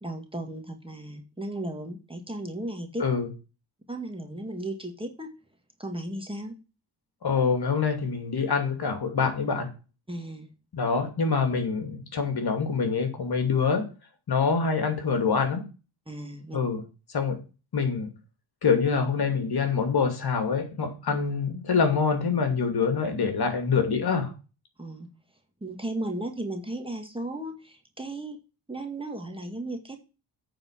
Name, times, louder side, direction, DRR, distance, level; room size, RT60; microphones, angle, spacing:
voice 1, 0.0-3.0 3.9-5.3 5.8-6.5 10.1-10.5 16.1-16.6 24.8-25.1 25.6-28.4 28.7-30.0, right 1 dB, 10° right, 3 dB, 2.0 m, -35 dB
voice 2, 7.2-9.7 10.7-13.9 14.3-15.6 16.5-16.8 17.1-17.4 17.7-18.1 18.6-24.3, left 5 dB, 50° left, 6 dB, 2.6 m, -25 dB
9.0 x 4.4 x 7.3 m, 0.32 s
cardioid pair, 85°, 48 cm